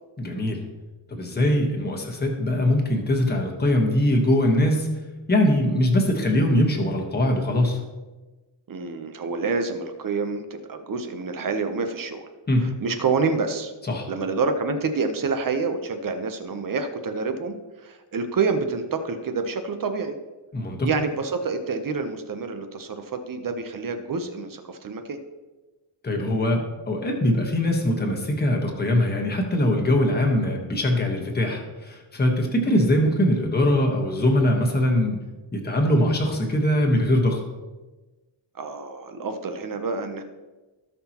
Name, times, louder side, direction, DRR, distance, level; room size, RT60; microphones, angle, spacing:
voice 1, 0.2-0.6 1.1-4.9 5.3-7.8 12.5-12.7 13.9-14.1 20.5-20.9 26.0-35.2 35.5-37.4, left 1 dB, 20° left, 1 dB, 1.3 m, -22 dB
voice 2, 8.7-12.3 12.8-13.7 14.1-20.1 20.8-25.2 32.6-32.9 38.5-40.2, right 4 dB, 40° right, 7 dB, 0.8 m, -28 dB
17.0 x 5.8 x 2.9 m, 1.2 s
wide cardioid pair, 180°, 49 cm